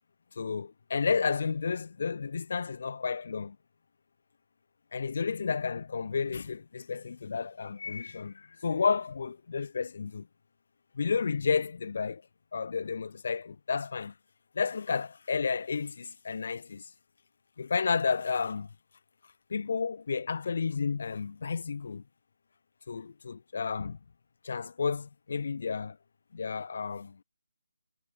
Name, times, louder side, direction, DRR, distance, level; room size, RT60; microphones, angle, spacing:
voice 1, 0.4-3.6 4.9-10.3 10.9-12.2 12.5-14.1 14.5-16.9 17.6-18.7 19.5-22.0 22.9-24.0 24.4-26.0 26.3-27.2, left 5 dB, 50° left, 0.4 m, -31 dB
figure-of-eight pair, 150°, 0 cm